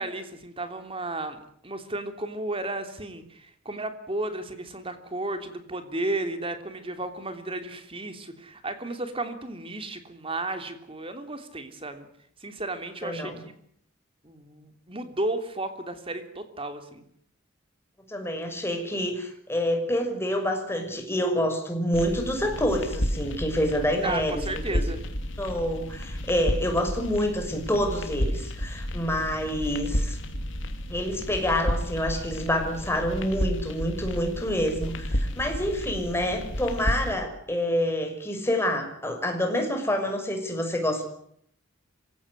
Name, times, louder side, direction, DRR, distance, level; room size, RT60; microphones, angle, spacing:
voice 1, 0.0-12.1 12.4-13.5 14.2-17.0 24.0-25.0, right 2 dB, 30° right, 8 dB, 3.2 m, -33 dB
voice 2, 13.0-13.4 18.1-24.4 24.7-24.8 25.4-30.2 30.9-41.0, equal, 15° left, 4 dB, 6.1 m, -27 dB
sound 1, 21.9-37.1, equal, 70° left, 3.2 m, -31 dB
26.5 x 17.0 x 9.7 m, 0.67 s
head